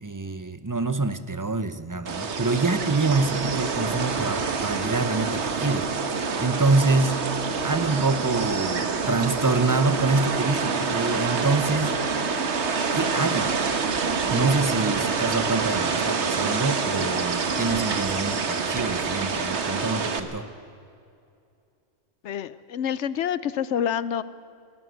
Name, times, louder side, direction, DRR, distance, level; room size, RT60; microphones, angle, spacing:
voice 1, 0.0-7.2 7.6-12.0 12.9-13.5 14.3-20.5, right 3 dB, 20° right, 12 dB, 0.7 m, -26 dB
sound 1, 2.1-20.2, right 5 dB, 75° right, 1.5 m, -26 dB
voice 2, 22.2-24.2, left 9 dB, 80° left, 17 dB, 1.0 m, -27 dB
18.0 x 18.0 x 8.0 m, 2.5 s
omnidirectional pair, 1.2 m